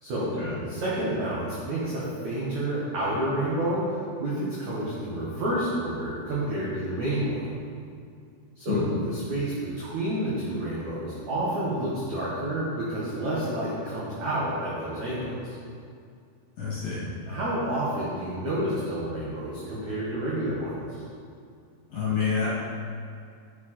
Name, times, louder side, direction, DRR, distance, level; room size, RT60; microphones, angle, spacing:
voice 1, 0.6-7.4 8.6-15.6 17.3-21.0, right 1 dB, 65° right, -8 dB, 1.8 m, -29 dB
voice 2, 16.6-17.0 21.9-22.5, left 6 dB, 40° left, -10 dB, 2.9 m, -27 dB
9.6 x 7.6 x 4.3 m, 2.3 s
omnidirectional pair, 5.5 m